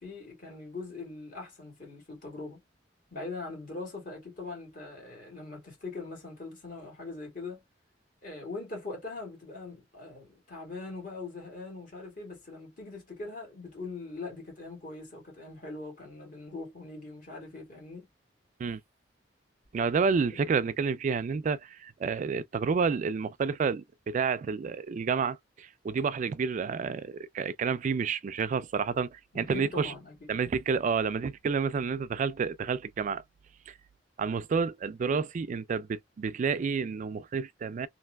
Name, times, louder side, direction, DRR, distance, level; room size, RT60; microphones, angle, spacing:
voice 1, 0.0-2.6 3.1-7.6 8.2-18.1 29.3-30.4, left 3 dB, 50° left, 2.0 m, -41 dB
voice 2, 19.7-29.9 30.3-33.2 33.7-33.8 34.2-37.9, right 5 dB, 45° right, 0.3 m, -30 dB
3.2 x 2.6 x 2.2 m
head